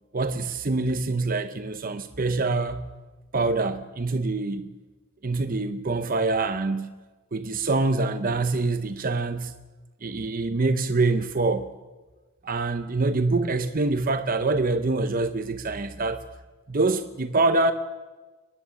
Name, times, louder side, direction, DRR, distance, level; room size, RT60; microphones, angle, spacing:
voice 1, 0.1-2.9 3.3-4.7 5.2-6.9 7.3-9.5 10.0-11.7 12.4-16.2 16.7-17.7, right 3 dB, 40° right, 0.8 m, -25 dB
29.5 x 10.5 x 8.4 m
head